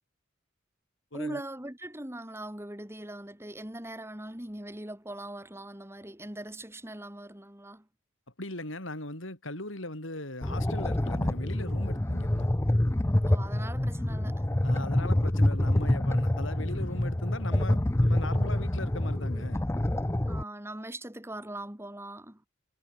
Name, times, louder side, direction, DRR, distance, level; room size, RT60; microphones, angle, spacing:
voice 1, 1.1-7.9 13.2-14.5 20.3-22.4, right 1 dB, 10° right, 2.8 m, -41 dB
voice 2, 8.4-12.5 14.6-19.6, left 1 dB, 75° left, 7.9 m, -39 dB
sound 1, 10.4-20.4, left 1 dB, 15° left, 0.5 m, -27 dB
head